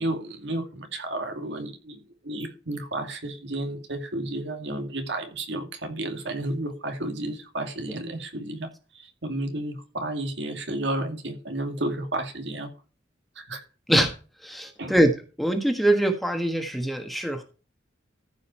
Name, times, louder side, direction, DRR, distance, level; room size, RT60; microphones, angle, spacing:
voice 1, 0.0-12.7 13.4-13.6 14.8-14.9, right 1 dB, 70° right, 2.4 m, -32 dB
voice 2, 14.4-15.1 15.4-17.4, right 1 dB, ahead, 1.4 m, -23 dB
14.5 x 5.4 x 4.4 m
head